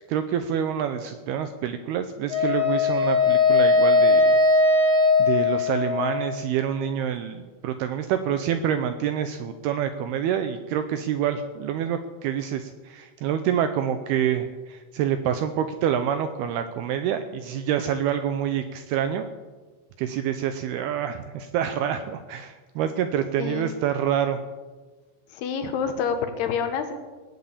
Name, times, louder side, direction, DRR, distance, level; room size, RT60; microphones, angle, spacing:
voice 1, 0.1-4.4 5.2-19.3 20.0-24.4, right 9 dB, 80° right, 9 dB, 2.3 m, -27 dB
Wind instrument woodwind instrument, 2.3-6.4, left 3 dB, 5° left, 3.2 m, -19 dB
voice 2, 23.4-23.7 25.3-26.9, left 6 dB, 70° left, 7 dB, 2.9 m, -27 dB
18.5 x 8.4 x 8.5 m, 1.3 s
omnidirectional pair, 5.2 m